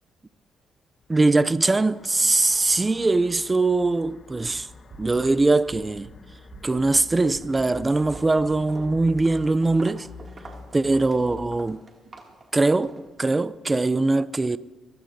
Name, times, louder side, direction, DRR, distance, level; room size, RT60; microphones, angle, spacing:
sound 1, 1.0-11.6, left 4 dB, 45° left, 1.2 m, -46 dB
voice 1, 1.1-4.7 5.0-6.1 6.6-10.1 10.7-11.8 12.5-14.6, right 3 dB, 20° right, 0.4 m, -22 dB
sound 2, 4.4-4.5 4.9-5.3 5.7-6.1 6.5-6.9 7.3-7.7 8.1-8.5 8.9-9.4, right 5 dB, 70° right, 2.6 m, -46 dB
Walk footsteps, 6.9-7.1 7.4-13.5, right 3 dB, 35° right, 2.3 m, -47 dB
23.0 x 14.5 x 2.7 m
cardioid pair, 90°, 0 cm